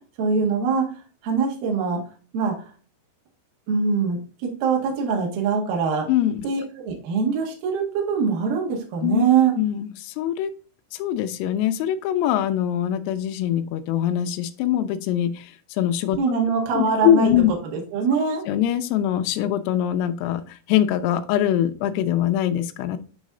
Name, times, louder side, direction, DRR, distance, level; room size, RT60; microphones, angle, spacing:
voice 1, 0.2-0.9 1.2-2.0 2.3-2.7 3.7-6.1 6.4-9.5 16.2-17.3 17.7-18.4, right 5 dB, 60° right, 0 dB, 2.8 m, -23 dB
voice 2, 6.1-6.4 9.0-9.2 9.5-10.5 10.9-15.5 15.8-16.4 16.7-17.5 18.5-23.0, left 11 dB, 90° left, 9 dB, 3.3 m, -23 dB
9.5 x 3.2 x 3.7 m, 0.36 s
omnidirectional pair, 5.8 m